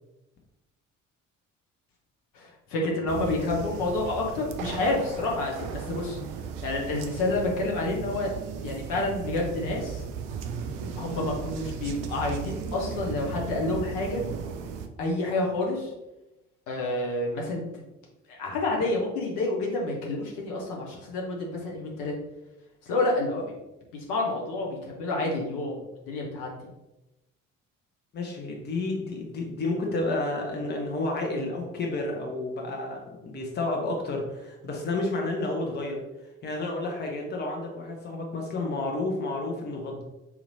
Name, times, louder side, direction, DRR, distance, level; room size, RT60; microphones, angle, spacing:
voice 1, 2.3-6.2 6.6-8.3 8.6-10.0 10.9-14.2 15.0-15.9 16.7-17.8 18.3-22.1 22.9-23.5 23.9-26.7, left 2 dB, 60° left, -1 dB, 0.9 m, -29 dB
sound 1, 3.1-14.9, right 6 dB, 55° right, 0.5 m, -36 dB
voice 2, 28.1-36.0 36.4-40.0, left 2 dB, 25° left, 1 dB, 0.8 m, -31 dB
4.1 x 2.9 x 2.7 m, 0.97 s
figure-of-eight pair, 45°, 38 cm